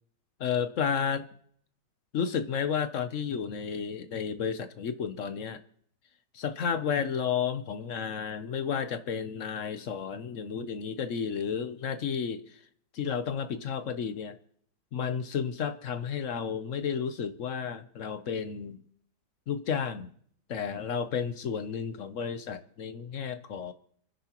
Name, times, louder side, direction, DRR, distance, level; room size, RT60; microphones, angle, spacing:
voice 1, 0.4-1.3 2.1-5.6 6.3-12.6 12.9-14.4 14.9-18.8 19.5-20.1 20.5-23.7, left 7 dB, 55° left, 1.0 m, -32 dB
29.0 x 10.5 x 3.0 m
omnidirectional pair, 1.9 m